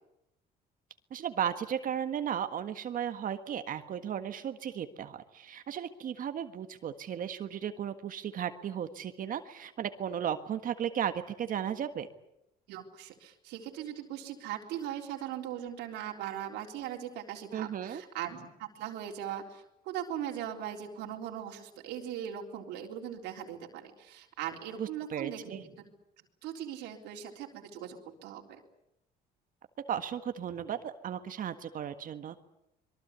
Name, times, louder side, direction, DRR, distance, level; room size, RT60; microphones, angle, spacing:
voice 1, 1.1-12.1 17.5-18.0 24.8-25.6 29.9-32.4, right 9 dB, 55° right, 9 dB, 1.6 m, -35 dB
voice 2, 12.7-25.9 26.4-28.6, right 10 dB, 90° right, 1 dB, 3.7 m, -40 dB
25.0 x 22.5 x 8.3 m, 0.84 s
cardioid pair, 110°, 17 cm